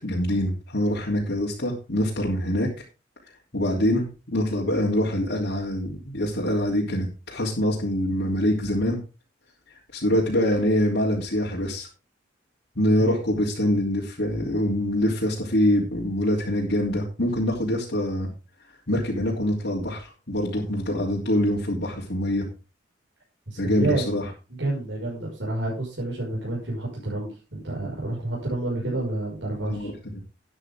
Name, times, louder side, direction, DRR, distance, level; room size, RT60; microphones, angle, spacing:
voice 1, 0.0-2.7 3.5-9.0 9.9-11.9 12.7-18.3 18.9-22.5 23.6-24.2 29.6-30.2, left 1 dB, 65° left, -5 dB, 3.4 m, -24 dB
voice 2, 23.5-24.0 24.6-29.9, right 2 dB, 75° right, -4 dB, 5.9 m, -29 dB
12.5 x 9.8 x 3.7 m, 0.30 s
head